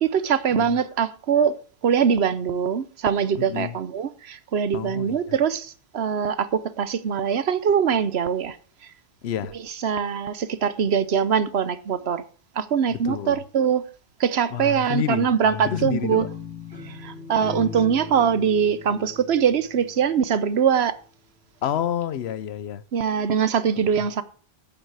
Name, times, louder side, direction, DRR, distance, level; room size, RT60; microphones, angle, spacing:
voice 1, 0.0-1.6 1.8-8.6 9.8-12.2 12.6-13.8 14.2-16.3 16.8-20.9 22.9-24.2, right 7 dB, 85° right, 1.1 m, -22 dB
voice 2, 3.4-3.8 4.7-5.4 9.2-9.5 12.9-13.4 14.5-15.3 15.6-16.3 21.6-22.8 24.0-24.1, left 10 dB, 85° left, 1.0 m, -29 dB
sound 1, 15.4-20.5, left 5 dB, 10° left, 3.7 m, -38 dB
9.2 x 8.8 x 4.7 m
omnidirectional pair, 1.0 m